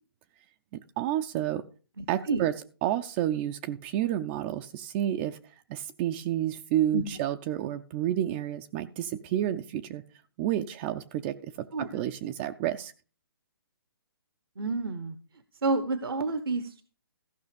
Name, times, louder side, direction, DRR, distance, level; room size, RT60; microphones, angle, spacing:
voice 1, 1.0-1.6 2.1-2.5 2.8-10.0 10.4-11.7 11.9-12.9, right 12 dB, 25° right, 7 dB, 0.4 m, -30 dB
voice 2, 2.0-2.4 6.9-7.0 11.7-11.9 14.6-15.2 15.6-16.8, right 3 dB, 75° right, 11 dB, 1.0 m, -29 dB
15.0 x 5.7 x 5.2 m, 0.36 s
hypercardioid pair, 145°, 12 cm